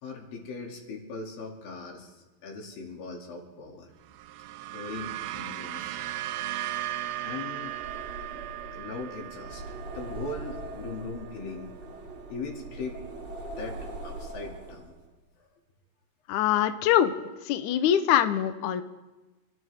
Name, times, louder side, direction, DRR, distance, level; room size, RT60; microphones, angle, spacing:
voice 1, 0.0-3.9 4.7-6.0 7.2-7.8 8.3-8.4 8.7-11.8 12.3-13.0 13.6-15.0 15.4-15.5, left 3 dB, 65° left, 0 dB, 4.2 m, -39 dB
sound 1, 4.0-12.5, right 13 dB, 80° right, 2.5 m, -38 dB
sound 2, 7.5-15.1, right 2 dB, 40° right, 2.4 m, -41 dB
voice 2, 16.3-18.8, left 10 dB, 85° left, 10 dB, 1.7 m, -24 dB
29.0 x 13.0 x 3.6 m, 1.2 s
omnidirectional pair, 4.5 m